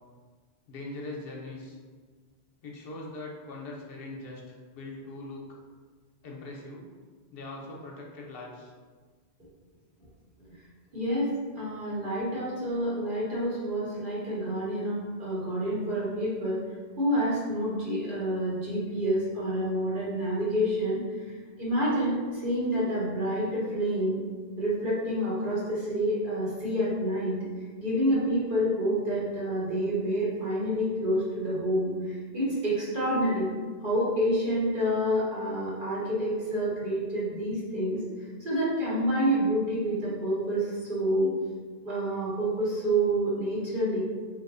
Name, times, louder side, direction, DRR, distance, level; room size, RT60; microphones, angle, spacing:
voice 1, 0.7-1.8 2.6-5.5 6.2-6.9 7.3-8.7, left 2 dB, 65° left, -2 dB, 0.8 m, -41 dB
voice 2, 10.9-11.3 11.6-16.6 17.0-21.0 21.6-24.2 24.6-27.4 27.8-33.5 33.8-38.0 38.4-41.3 41.8-44.0, equal, 55° right, -8 dB, 1.1 m, -28 dB
3.2 x 2.0 x 3.7 m, 1.5 s
omnidirectional pair, 1.1 m